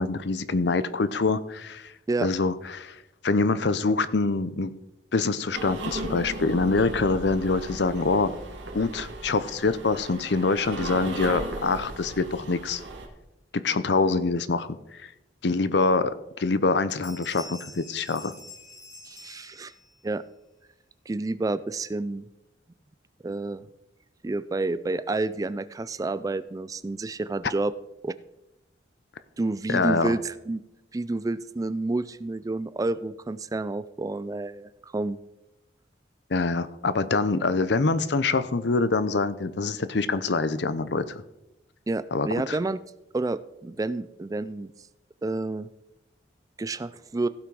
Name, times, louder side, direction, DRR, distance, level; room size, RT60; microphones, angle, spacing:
voice 1, 0.0-1.9 2.2-4.7 5.1-8.3 8.7-12.8 13.5-15.1 15.4-18.3 29.7-30.1 36.3-41.2 42.1-42.6, left 3 dB, 65° left, 14 dB, 0.6 m, -25 dB
sound 1, 5.5-13.1, right 1 dB, 80° right, 1.9 m, -36 dB
sound 2, 16.6-16.7 16.9-20.0, left 2 dB, 20° left, 1.4 m, -46 dB
voice 2, 19.1-19.7 20.0-20.2 21.1-22.3 23.2-23.6 24.2-27.7 28.0-28.1 29.4-30.6 30.9-35.2 41.9-42.8 43.1-44.7 45.2-45.7 46.6-47.3, right 2 dB, 20° right, 15 dB, 0.3 m, -29 dB
16.0 x 5.9 x 4.8 m, 0.93 s
head